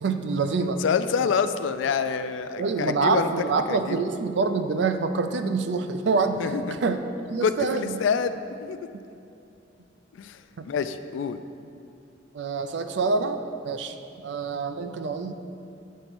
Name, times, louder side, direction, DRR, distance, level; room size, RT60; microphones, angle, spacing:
voice 1, 0.0-0.8 2.6-7.0 7.3-8.0 10.6-10.7 12.3-13.4 13.6-15.3, right 4 dB, 65° right, 8 dB, 0.4 m, -26 dB
voice 2, 0.8-3.3 3.7-4.0 6.4-6.8 7.4-8.8 10.1-10.4 10.6-11.4, left 6 dB, 85° left, 11 dB, 0.3 m, -27 dB
8.0 x 3.0 x 6.0 m, 2.6 s
head